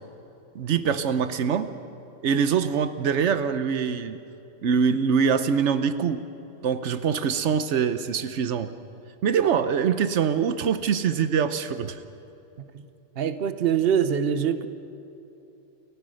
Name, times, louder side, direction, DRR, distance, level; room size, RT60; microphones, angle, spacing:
voice 1, 0.5-1.7 2.2-4.2 4.6-6.2 6.6-8.7 9.2-12.0, right 7 dB, 85° right, 11 dB, 1.1 m, -24 dB
voice 2, 13.2-14.7, right 8 dB, 60° right, 11 dB, 1.1 m, -24 dB
29.5 x 15.0 x 6.4 m, 3.0 s
omnidirectional pair, 1.2 m